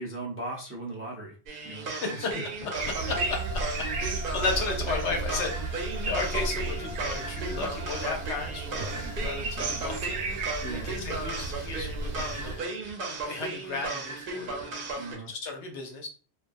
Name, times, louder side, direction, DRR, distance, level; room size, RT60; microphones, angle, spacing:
voice 1, 0.0-1.3 1.6-2.5 10.6-10.9 15.0-15.3, right 2 dB, 20° right, -2 dB, 0.3 m, -38 dB
sound 1, 1.5-15.1, right 3 dB, 60° right, 0.7 m, -36 dB
voice 2, 2.0-2.3 2.9-3.6 4.3-10.5 10.8-12.7 13.2-14.8 15.3-16.1, left 3 dB, 85° left, 2 dB, 1.0 m, -34 dB
sound 2, 2.8-12.6, right 3 dB, 90° right, 0.9 m, -34 dB
Bowed string instrument, 3.0-10.2, left 2 dB, 20° left, 0.6 m, -45 dB
2.3 x 2.2 x 2.5 m, 0.38 s
omnidirectional pair, 1.1 m